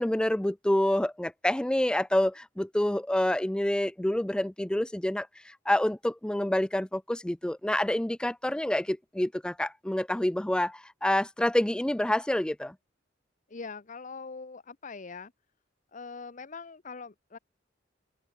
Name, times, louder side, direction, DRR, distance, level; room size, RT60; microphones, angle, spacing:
voice 1, 0.0-12.8, left 1 dB, 5° left, 0.3 m, -27 dB
voice 2, 13.5-15.3 15.9-17.4, left 4 dB, 40° left, 0.8 m, -42 dB
head